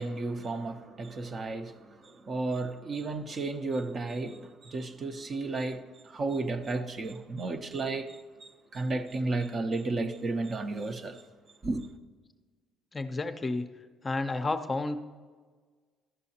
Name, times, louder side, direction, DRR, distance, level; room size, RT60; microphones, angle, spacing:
voice 1, 0.0-11.2 11.6-11.9, right 3 dB, 40° right, 0.6 m, -33 dB
voice 2, 12.9-13.7 14.0-15.0, left 3 dB, 25° left, 0.5 m, -31 dB
12.5 x 6.3 x 2.8 m
supercardioid pair, 80°, 0 cm